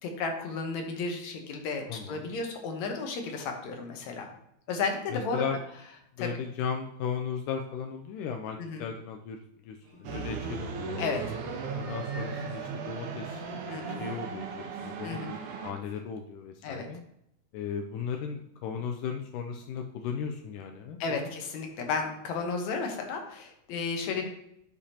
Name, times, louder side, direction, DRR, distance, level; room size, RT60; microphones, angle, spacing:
voice 1, 0.0-4.3 4.7-5.4 6.2-6.3 8.6-8.8 11.0-11.3 13.7-14.1 15.0-15.4 16.6-16.9 21.0-24.3, left 4 dB, 70° left, 4 dB, 2.2 m, -33 dB
voice 2, 1.9-2.3 5.1-5.6 6.2-11.1 11.7-15.4 15.6-17.0 17.5-21.3 24.2-24.3, left 7 dB, 85° left, 3 dB, 2.2 m, -36 dB
sound 1, 9.8-15.9, right 1 dB, 55° right, 2.2 m, -53 dB
sound 2, 10.0-15.7, right 5 dB, 75° right, 2.4 m, -36 dB
12.0 x 5.0 x 2.8 m, 0.77 s
omnidirectional pair, 3.6 m